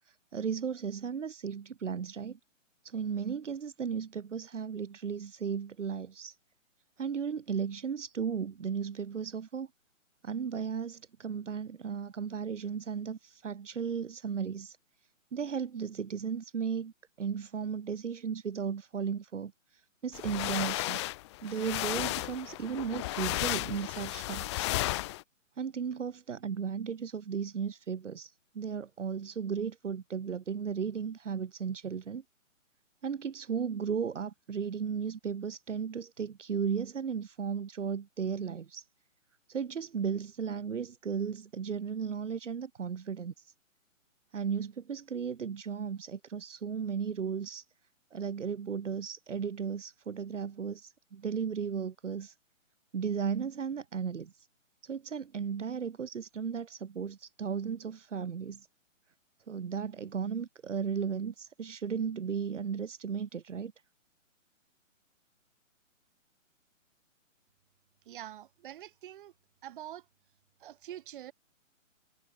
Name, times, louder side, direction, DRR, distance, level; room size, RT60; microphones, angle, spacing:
voice 1, 0.3-2.4 2.8-6.3 7.0-9.7 10.2-14.8 15.3-16.9 17.2-19.5 20.0-21.0 21.4-24.7 25.6-32.2 33.0-38.8 39.5-43.3 44.3-47.6 48.1-52.3 52.9-54.3 54.8-58.7 59.5-63.7, right 6 dB, 65° right, 4.9 m, -35 dB
sound 1, 20.1-25.2, left 19 dB, 20° left, 1.2 m, -34 dB
voice 2, 68.0-69.3 69.6-70.1 70.6-71.3, right 12 dB, 40° right, 6.3 m, -45 dB
hypercardioid pair, 150°, 40 cm